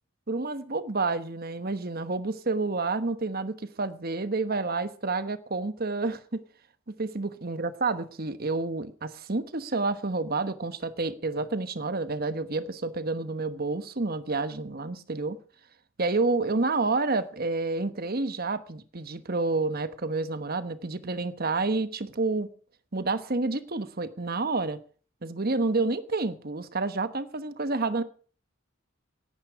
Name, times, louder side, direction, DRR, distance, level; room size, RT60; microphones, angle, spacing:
voice 1, 0.3-6.4 6.9-15.4 16.0-22.5 22.9-24.8 25.2-28.0, right 3 dB, 45° right, 1.1 m, -29 dB
17.0 x 11.5 x 4.8 m
head